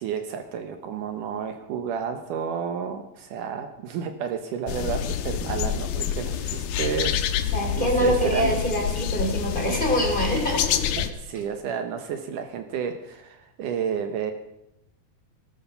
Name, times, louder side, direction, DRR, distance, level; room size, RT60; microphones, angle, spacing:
voice 1, 0.0-8.6 11.2-14.3, right 7 dB, 70° right, 7 dB, 2.4 m, -31 dB
sound 1, 4.7-11.1, left 9 dB, 80° left, 2.7 m, -27 dB
voice 2, 7.5-10.8, equal, 15° left, 1 dB, 3.4 m, -25 dB
18.5 x 12.5 x 5.7 m, 0.82 s
omnidirectional pair, 4.0 m